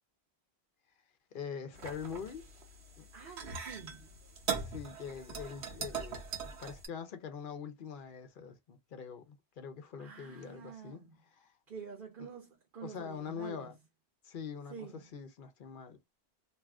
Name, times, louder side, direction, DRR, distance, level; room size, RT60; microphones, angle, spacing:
voice 1, 1.3-2.4 3.0-3.1 4.6-11.0 11.4-11.5 12.2-12.3 12.8-13.7 14.2-14.8 15.1-16.0, left 7 dB, 60° left, 0.7 m, -44 dB
sound 1, 1.7-6.9, right 6 dB, 80° right, 1.1 m, -41 dB
voice 2, 3.1-4.1 10.0-11.1 11.7-13.7 14.7-15.0, right 6 dB, 55° right, 1.0 m, -47 dB
2.7 x 2.4 x 3.4 m
omnidirectional pair, 1.1 m